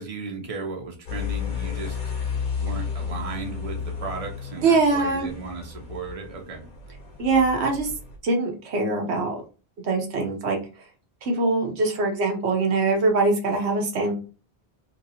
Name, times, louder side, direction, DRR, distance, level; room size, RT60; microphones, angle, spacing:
voice 1, 0.0-2.0 2.6-6.6, right 4 dB, 40° right, 2 dB, 0.8 m, -35 dB
sound 1, 1.1-8.2, left 7 dB, 50° left, 0.8 m, -33 dB
voice 2, 4.6-5.3 7.2-7.9 8.2-9.4 9.8-10.6 11.2-14.1, right 3 dB, 90° right, 2 dB, 1.1 m, -22 dB
3.1 x 2.8 x 2.7 m, 0.36 s
omnidirectional pair, 1.1 m